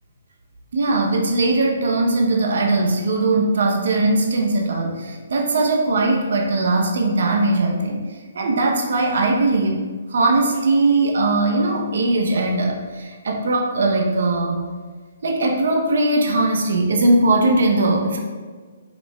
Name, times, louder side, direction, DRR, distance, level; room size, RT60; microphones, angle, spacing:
voice 1, 0.7-14.7 15.2-18.2, right 2 dB, 70° right, 1 dB, 0.7 m, -20 dB
5.1 x 2.5 x 3.1 m, 1.5 s
hypercardioid pair, 145°, 0 cm